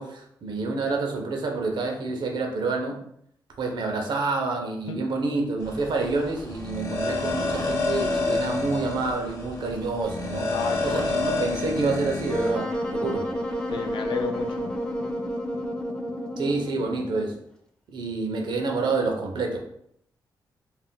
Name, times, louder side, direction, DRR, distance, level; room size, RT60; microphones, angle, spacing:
voice 1, 0.0-3.0 3.6-10.5 10.8-13.3 16.4-17.4 17.9-19.6, right 3 dB, 70° right, 2 dB, 0.6 m, -28 dB
sound 1, 5.6-12.5, left 3 dB, 40° left, 0.7 m, -29 dB
voice 2, 10.5-11.2 13.7-14.7, left 6 dB, 75° left, 5 dB, 0.4 m, -32 dB
Wind instrument woodwind instrument, 12.3-17.4, equal, 10° left, 0.4 m, -30 dB
2.5 x 2.1 x 3.6 m, 0.69 s
cardioid pair, 100°, 8 cm